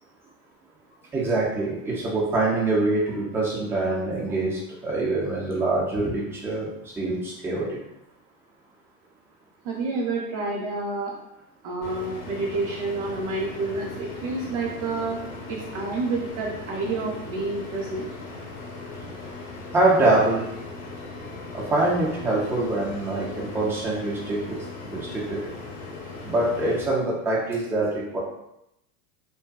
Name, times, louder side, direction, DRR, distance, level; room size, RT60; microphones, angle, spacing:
voice 1, 1.1-7.8 19.7-20.5 21.5-25.5 26.3-28.2, right 2 dB, 5° right, -5 dB, 0.3 m, -25 dB
voice 2, 9.6-11.2 11.6-15.2 15.5-18.1, right 3 dB, 45° right, -2 dB, 0.6 m, -29 dB
sound 1, 11.8-26.8, left 3 dB, 65° left, 0.8 m, -38 dB
2.6 x 2.3 x 2.3 m, 0.84 s
hypercardioid pair, 110°, 43 cm